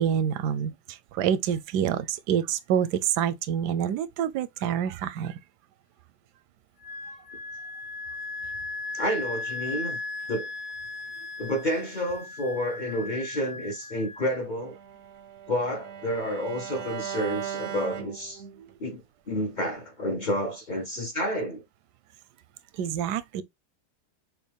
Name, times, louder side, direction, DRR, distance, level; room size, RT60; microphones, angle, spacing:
voice 1, 0.0-5.4 18.6-18.7 22.7-23.4, right 9 dB, 85° right, 1.2 m, -27 dB
Wind instrument woodwind instrument, 6.8-14.3, left 3 dB, 80° left, 1.6 m, -37 dB
voice 2, 8.9-10.0 10.3-10.5 11.4-14.8 15.5-18.4 18.8-21.6, equal, 40° left, 0.8 m, -30 dB
Bowed string instrument, 14.6-18.7, right 9 dB, 60° right, 0.7 m, -38 dB
6.2 x 2.4 x 3.3 m
omnidirectional pair, 1.7 m